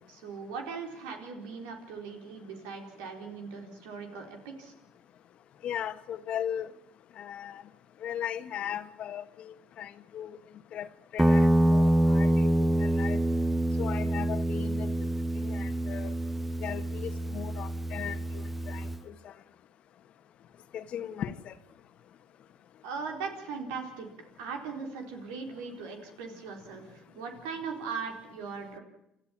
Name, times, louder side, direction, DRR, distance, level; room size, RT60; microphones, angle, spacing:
voice 1, 0.1-4.7 22.8-24.1 24.4-28.8, right 5 dB, 85° right, 3 dB, 4.3 m, -39 dB
voice 2, 5.6-6.7 7.2-7.6 8.0-10.4 10.7-10.9 11.1-12.5 12.8-13.2 13.8-14.9 15.4-16.1 16.6-19.1 20.7-21.5, left 10 dB, 60° left, 12 dB, 1.4 m, -37 dB
Guitar, 11.2-19.0, right 1 dB, 5° right, 1.2 m, -26 dB
28.0 x 13.5 x 8.8 m, 0.85 s
supercardioid pair, 75°, 2 cm